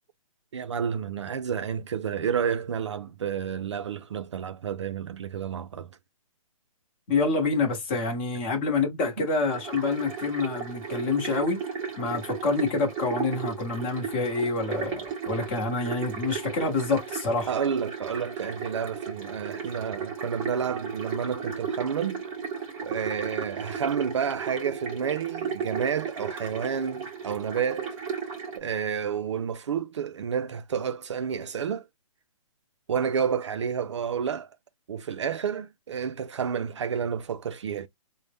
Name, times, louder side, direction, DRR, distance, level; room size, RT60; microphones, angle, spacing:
voice 1, 0.5-6.0 9.2-9.3 17.5-22.2 22.8-28.0 28.6-31.9 32.9-34.5 34.9-37.9, right 7 dB, 55° right, 0.4 m, -30 dB
voice 2, 7.1-11.6 12.0-17.5, left 3 dB, 20° left, 0.9 m, -27 dB
sound 1, 9.5-28.6, right 6 dB, 15° right, 0.7 m, -35 dB
3.9 x 2.1 x 3.3 m
hypercardioid pair, 165°, 18 cm